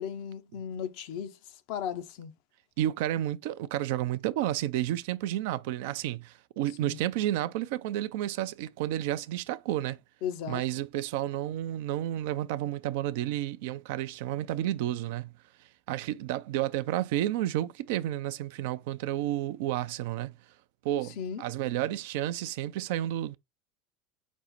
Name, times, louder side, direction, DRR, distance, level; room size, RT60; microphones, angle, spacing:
voice 1, 0.0-1.4 1.7-2.3 6.8-7.0 10.2-10.6 21.2-21.4, left 8 dB, 60° left, 0.6 m, -35 dB
voice 2, 2.8-10.0 10.5-15.3 15.9-20.3 20.8-23.4, right 13 dB, 65° right, 0.3 m, -31 dB
5.2 x 2.0 x 3.9 m
figure-of-eight pair, 80°, 0 cm